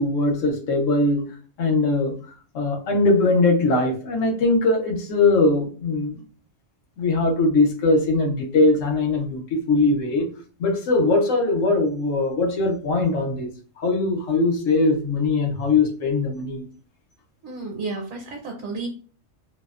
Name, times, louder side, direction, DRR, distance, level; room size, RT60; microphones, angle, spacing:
voice 1, 0.0-1.3 1.6-2.2 2.5-6.2 7.0-10.3 10.6-13.5 13.8-16.7, left 3 dB, 75° left, 1.0 m, -21 dB
voice 2, 17.4-18.9, right 3 dB, 65° right, 0.9 m, -32 dB
2.6 x 2.0 x 2.3 m
omnidirectional pair, 1.3 m